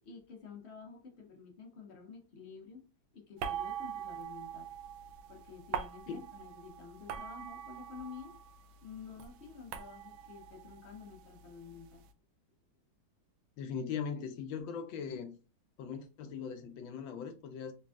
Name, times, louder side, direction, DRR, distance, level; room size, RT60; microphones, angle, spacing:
voice 1, 0.0-2.9 3.1-4.7 5.3-8.4 8.8-12.0, left 5 dB, 60° left, 0.7 m, -50 dB
sound 1, 3.4-8.7 8.9-11.8, right 8 dB, 85° right, 1.4 m, -43 dB
voice 2, 13.6-15.3 15.8-17.7, left 6 dB, 75° left, 1.4 m, -40 dB
4.0 x 3.3 x 2.3 m
omnidirectional pair, 2.2 m